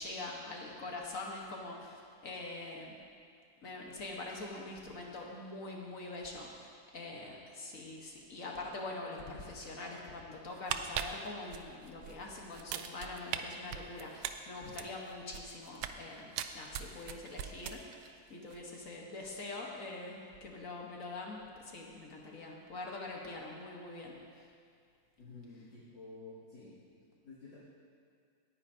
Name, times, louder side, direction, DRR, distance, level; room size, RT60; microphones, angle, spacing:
voice 1, 0.0-3.0 3.6-24.2, left 2 dB, 50° left, -1 dB, 1.4 m, -44 dB
sound 1, 10.5-12.1 12.5-13.4 13.7-16.0 16.3-18.1 18.4-18.6, right 11 dB, 75° right, 1.1 m, -39 dB
voice 2, 25.2-27.6, left 3 dB, 70° left, -13 dB, 3.2 m, -51 dB
18.0 x 9.7 x 2.7 m, 2.2 s
omnidirectional pair, 2.1 m